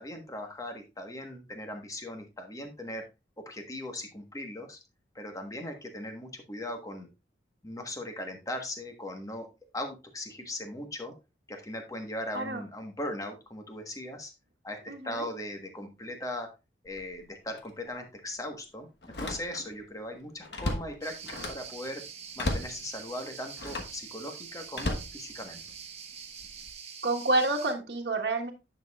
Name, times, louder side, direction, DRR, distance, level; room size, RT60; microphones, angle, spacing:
voice 1, 0.0-3.0 3.5-4.8 5.1-7.1 7.6-9.5 9.7-11.1 11.5-14.3 14.6-16.5 16.8-22.0 22.4-25.6, left 1 dB, 20° left, 5 dB, 1.3 m, -39 dB
voice 2, 14.9-15.3 27.0-28.5, right 2 dB, 65° right, 1 dB, 1.3 m, -28 dB
Slam, 16.9-17.1 17.6-17.7 19.0-19.8 20.2-21.7 22.4-22.8 23.5-24.0 24.7-25.8 26.4-26.7, left 2 dB, 65° left, 1.2 m, -35 dB
sound 1, 21.0-27.7, right 7 dB, 35° right, 1.1 m, -45 dB
10.0 x 6.4 x 2.4 m, 0.27 s
head